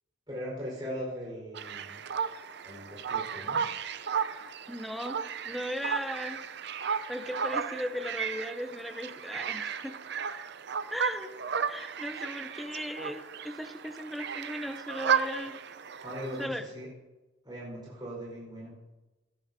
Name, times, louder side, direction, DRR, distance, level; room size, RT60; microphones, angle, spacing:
voice 1, 0.3-2.0 2.6-3.7 16.0-16.9 17.4-18.8, equal, 25° right, -5 dB, 4.6 m, -39 dB
sound 1, 1.5-16.5, right 6 dB, 65° right, 0.6 m, -34 dB
voice 2, 4.7-6.4 6.8-10.0 10.9-11.3 11.7-15.6 16.4-16.6, equal, ahead, 7 dB, 0.7 m, -37 dB
17.0 x 13.0 x 2.7 m, 1.1 s
head